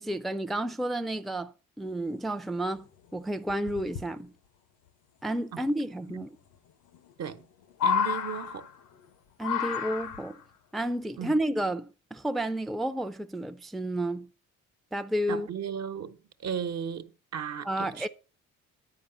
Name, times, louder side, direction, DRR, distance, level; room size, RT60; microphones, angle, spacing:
voice 1, 0.0-2.9 3.1-4.3 5.2-6.3 9.4-10.4 10.7-14.3 14.9-15.5 17.7-18.1, right 1 dB, ahead, 0.5 m, -31 dB
sound 1, 2.4-2.5 2.8-2.9 3.5-4.0 5.6-5.7 6.9-7.4 7.7-8.9 9.4-10.4 11.4-11.5, left 7 dB, 90° left, 1.1 m, -30 dB
voice 2, 7.8-8.7 11.2-11.4 15.3-18.1, right 8 dB, 60° right, 1.0 m, -36 dB
9.5 x 4.8 x 6.8 m
cardioid pair, 90°, 30 cm